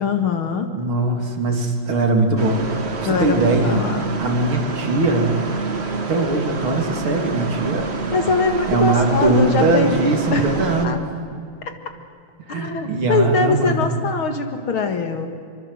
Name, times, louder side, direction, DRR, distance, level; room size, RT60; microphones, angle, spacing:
voice 1, 0.0-0.7 3.0-4.1 8.1-10.5 10.8-11.0 12.5-15.3, left 4 dB, 70° left, 6 dB, 2.7 m, -22 dB
voice 2, 0.7-3.8 4.2-5.4 6.1-7.9 8.7-11.0 12.5-13.8, right 3 dB, 70° right, 3 dB, 3.6 m, -20 dB
sound 1, 2.4-10.9, right 3 dB, 30° right, 1.6 m, -28 dB
25.5 x 24.0 x 8.0 m, 2.4 s
omnidirectional pair, 2.4 m